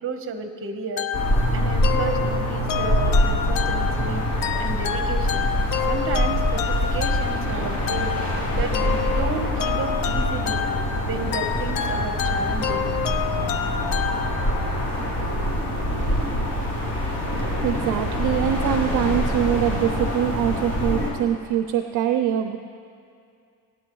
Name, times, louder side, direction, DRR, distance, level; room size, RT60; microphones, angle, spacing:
voice 1, 0.0-1.1 1.5-4.2 4.6-5.5 5.9-8.1 8.5-10.7 11.0-13.0, right 4 dB, 35° right, 6 dB, 1.1 m, -32 dB
sound 1, 1.0-14.8, left 8 dB, 65° left, 0.7 m, -29 dB
sound 2, 1.1-21.1, equal, 50° left, 3.3 m, -25 dB
voice 2, 17.6-22.6, right 10 dB, 55° right, 7 dB, 0.6 m, -23 dB
23.0 x 9.4 x 3.1 m, 2.3 s
cardioid pair, 130°, 37 cm